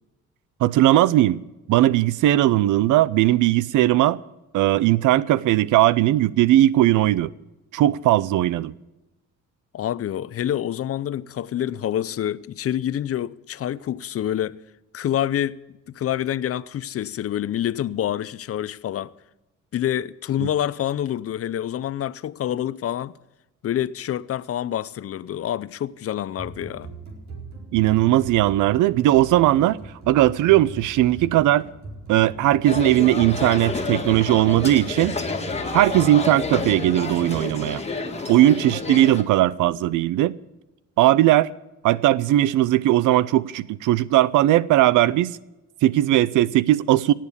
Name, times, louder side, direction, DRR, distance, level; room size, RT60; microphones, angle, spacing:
voice 1, 0.6-1.4 1.7-4.2 4.5-7.3 7.7-8.7 20.4-20.5 27.7-29.8 30.1-31.7 32.1-35.1 35.7-37.8 38.3-40.3 41.0-41.5 41.8-45.4 45.8-47.1, right 14 dB, 85° right, 0.5 m, -18 dB
voice 2, 9.7-14.6 14.9-15.6 15.9-19.1 19.7-23.2 23.6-26.9, left 11 dB, 50° left, 0.6 m, -27 dB
sound 1, 26.4-37.4, right 3 dB, 65° right, 4.8 m, -39 dB
sound 2, 32.6-39.2, left 3 dB, 20° left, 1.9 m, -29 dB
17.5 x 7.5 x 8.4 m
cardioid pair, 90°, 30 cm